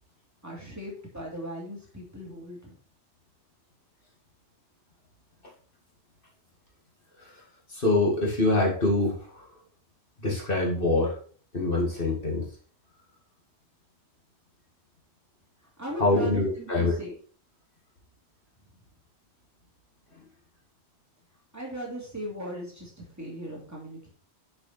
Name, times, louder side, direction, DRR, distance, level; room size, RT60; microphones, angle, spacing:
voice 1, 0.4-2.8 15.8-17.1 21.5-24.1, equal, 15° right, -3 dB, 2.5 m, -38 dB
voice 2, 7.7-9.5 10.2-11.2 11.5-12.5 16.0-17.0 20.1-20.2, left 2 dB, 50° left, -3 dB, 2.2 m, -25 dB
7.0 x 5.8 x 4.2 m, 0.43 s
omnidirectional pair, 1.2 m